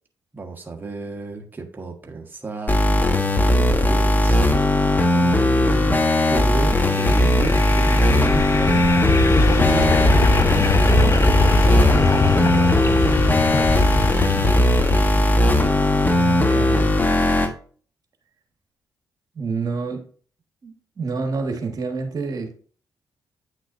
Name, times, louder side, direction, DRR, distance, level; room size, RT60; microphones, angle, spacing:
voice 1, 0.3-6.0 6.3-8.9 9.7-12.5, right 3 dB, 25° right, 1 dB, 1.4 m, -33 dB
sound 1, 2.7-17.5, left 1 dB, 25° left, 1.3 m, -18 dB
sound 2, 6.5-15.7, left 3 dB, 40° left, 0.9 m, -22 dB
voice 2, 16.1-16.9 19.4-20.0 20.6-22.5, right 4 dB, 55° right, 3 dB, 1.5 m, -28 dB
9.2 x 6.0 x 2.6 m, 0.43 s
supercardioid pair, 60°, 8 cm